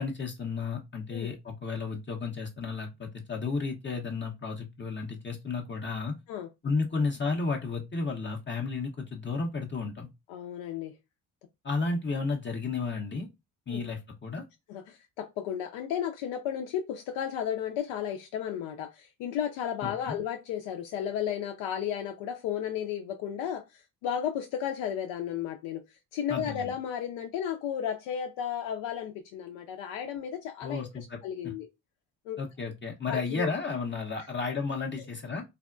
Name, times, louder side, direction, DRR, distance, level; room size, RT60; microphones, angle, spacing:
voice 1, 0.0-6.1 6.6-10.1 11.6-13.3 13.7-14.4 19.8-20.1 26.3-26.7 30.6-31.2 32.4-35.4, left 4 dB, 25° left, 0.6 m, -32 dB
voice 2, 10.3-10.9 13.7-13.9 14.7-25.8 26.1-31.7 32.3-32.4 33.1-33.5, left 9 dB, 65° left, 0.6 m, -34 dB
3.4 x 2.1 x 2.4 m
hypercardioid pair, 45°, 49 cm